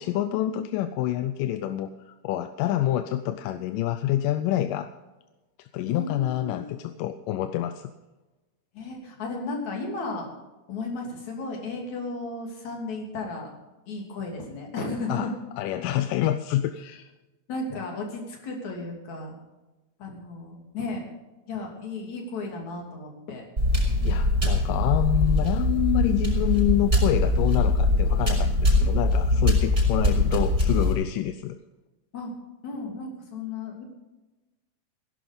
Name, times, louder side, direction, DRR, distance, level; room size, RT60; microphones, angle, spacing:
voice 1, 0.0-4.9 5.6-7.9 15.1-17.1 24.0-31.6, left 13 dB, 85° left, 10 dB, 2.3 m, -27 dB
voice 2, 5.9-6.7 8.7-10.3 10.7-13.5 13.9-15.3 17.5-19.4 20.0-21.1 21.5-23.5 32.1-32.3 32.6-33.8, left 3 dB, 60° left, 1 dB, 4.2 m, -34 dB
sound 1, 23.6-30.9, left 2 dB, 20° right, 6.0 m, -22 dB
18.0 x 11.5 x 5.2 m, 1.1 s
omnidirectional pair, 3.7 m